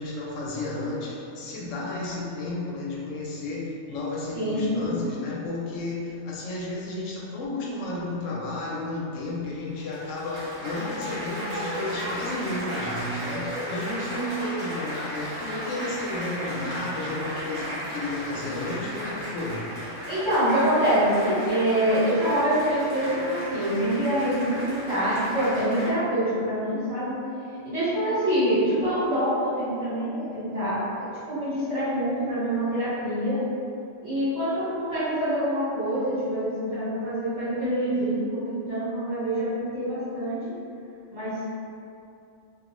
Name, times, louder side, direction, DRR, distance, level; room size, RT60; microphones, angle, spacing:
voice 1, 0.0-19.7, left 2 dB, 75° left, -4 dB, 0.9 m, -32 dB
voice 2, 4.3-4.9 20.1-27.2 27.6-33.4 34.0-40.4 41.1-41.4, right 1 dB, 60° right, -13 dB, 1.8 m, -25 dB
Applause, 9.7-25.9, equal, 75° right, 1.3 m, -35 dB
3.0 x 2.3 x 3.0 m, 2.6 s
omnidirectional pair, 1.3 m